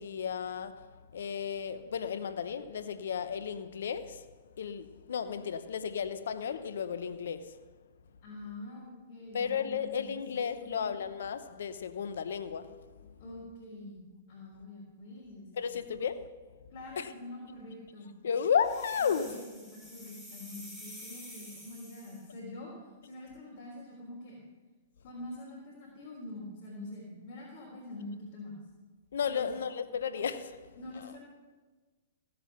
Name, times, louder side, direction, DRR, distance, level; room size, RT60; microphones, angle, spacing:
voice 1, 0.0-7.7 9.3-13.2 15.5-16.3 17.0-17.1 18.2-19.4 29.1-31.1, left 7 dB, 75° left, 0.9 m, -34 dB
voice 2, 8.2-10.2 10.6-10.9 13.2-14.0 14.3-15.5 16.7-18.1 19.0-24.4 25.0-28.6 29.3-29.5 30.8-31.2, left 2 dB, 50° left, 3.5 m, -45 dB
sound 1, 18.6-22.3, equal, ahead, 3.8 m, -49 dB
16.0 x 7.7 x 5.8 m
hypercardioid pair, 115°, 0 cm